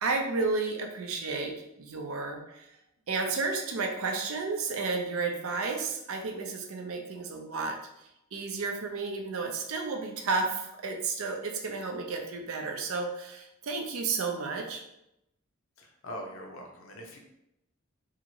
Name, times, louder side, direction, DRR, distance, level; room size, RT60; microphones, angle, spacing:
voice 1, 0.0-2.7 3.1-7.8 8.3-14.8, right 4 dB, 75° right, 3 dB, 0.5 m, -32 dB
voice 2, 15.8-17.2, equal, 70° left, 1 dB, 0.6 m, -42 dB
2.8 x 2.5 x 2.8 m, 0.84 s
head